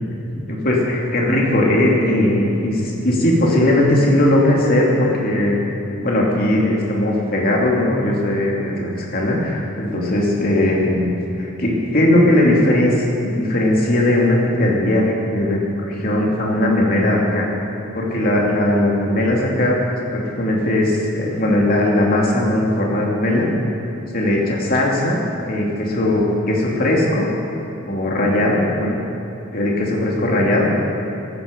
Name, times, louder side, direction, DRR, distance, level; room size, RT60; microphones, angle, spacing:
voice 1, 0.3-5.6 6.0-12.9 13.2-17.5 17.9-19.8 20.1-23.5 24.1-25.2 25.4-27.3 27.9-29.0 29.5-30.7, left 1 dB, 50° left, -2 dB, 2.6 m, -18 dB
16.0 x 12.5 x 5.2 m, 2.9 s
head